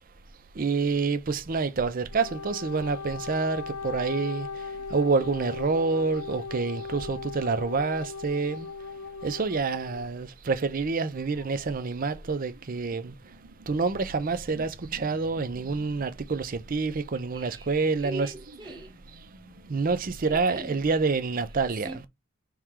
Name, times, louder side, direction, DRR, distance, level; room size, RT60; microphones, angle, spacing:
voice 1, 0.5-8.7 9.2-13.4 13.7-18.3 19.7-22.0, right 4 dB, 40° right, 0.5 m, -27 dB
Wind instrument woodwind instrument, 2.0-10.1, left 4 dB, 90° left, 0.4 m, -38 dB
sound 1, 11.2-20.2, equal, 85° right, 1.4 m, -53 dB
voice 2, 17.3-18.9 20.3-20.8 21.8-22.1, right 1 dB, 20° right, 1.0 m, -41 dB
3.7 x 3.1 x 4.4 m
head